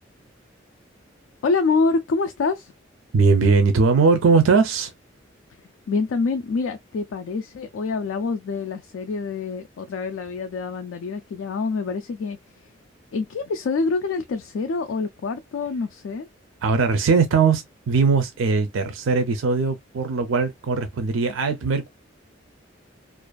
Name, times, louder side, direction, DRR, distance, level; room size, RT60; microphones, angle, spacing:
voice 1, 1.4-2.7 5.9-12.4 13.1-16.3, left 4 dB, 85° left, 0.3 m, -26 dB
voice 2, 3.1-4.9 16.6-21.9, right 4 dB, 90° right, 0.4 m, -20 dB
2.5 x 2.4 x 2.2 m
head